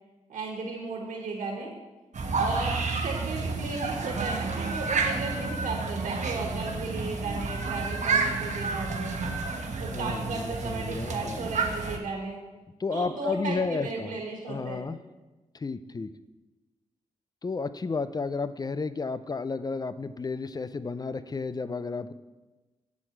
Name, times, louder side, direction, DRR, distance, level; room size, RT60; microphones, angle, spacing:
voice 1, 0.3-1.7 2.4-9.2 9.8-12.4 12.9-14.9, right 3 dB, 90° right, 0 dB, 1.5 m, -35 dB
sound 1, 2.1-12.0, right 4 dB, 65° right, 1.1 m, -30 dB
voice 2, 9.9-11.5 12.8-14.2 14.5-15.0 15.5-16.1 17.4-22.1, left 4 dB, 30° left, 13 dB, 0.5 m, -32 dB
8.4 x 4.5 x 7.3 m, 1.2 s
cardioid pair, 60°, 13 cm